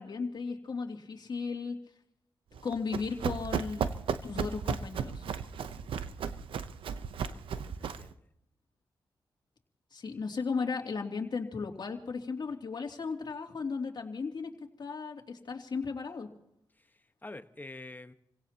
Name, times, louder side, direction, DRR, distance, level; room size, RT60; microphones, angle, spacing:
voice 1, 0.0-1.8 2.6-3.9 4.2-5.2 9.9-14.5 14.8-16.3, left 5 dB, 55° left, 2 dB, 2.8 m, -35 dB
Run, 2.6-8.1, right 7 dB, 90° right, 0.8 m, -35 dB
voice 2, 5.4-6.2 7.3-8.2 16.8-18.1, left 2 dB, 20° left, 9 dB, 1.2 m, -49 dB
29.0 x 17.0 x 2.9 m, 0.79 s
cardioid pair, 60°, 9 cm